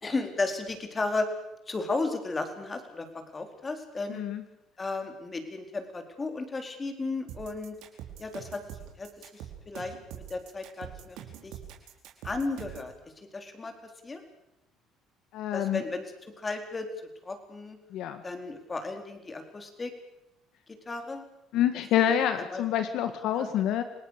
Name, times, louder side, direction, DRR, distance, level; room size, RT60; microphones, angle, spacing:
voice 1, 0.0-1.3 1.7-3.1 3.3-4.2 4.8-7.8 8.2-8.6 9.0-9.1 9.7-11.2 11.4-11.6 12.2-12.9 13.3-14.2 15.5-16.1 16.4-16.9 17.2-17.8 18.2-19.9 20.7-21.2 22.4-22.6 23.4-23.5, left 3 dB, 25° left, 6 dB, 4.5 m, -34 dB
voice 2, 4.1-4.4 15.3-15.8 17.9-18.2 21.5-23.8, left 10 dB, 70° left, 9 dB, 1.7 m, -27 dB
sound 1, 7.3-12.9, right 11 dB, 80° right, 4.7 m, -44 dB
29.0 x 19.0 x 6.8 m, 0.87 s
cardioid pair, 105°, 0 cm